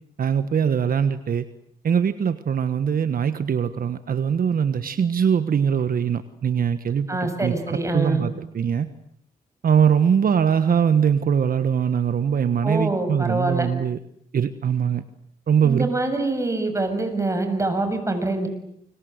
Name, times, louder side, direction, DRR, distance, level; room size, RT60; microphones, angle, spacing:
voice 1, 0.2-1.4 1.8-8.9 9.6-14.0 14.3-15.0 15.5-15.9, right 7 dB, 65° right, 11 dB, 1.4 m, -22 dB
voice 2, 7.1-8.2 12.6-13.7 15.6-18.5, right 2 dB, 20° right, 7 dB, 7.1 m, -25 dB
29.0 x 24.5 x 8.1 m, 0.69 s
cardioid pair, 95°, 16 cm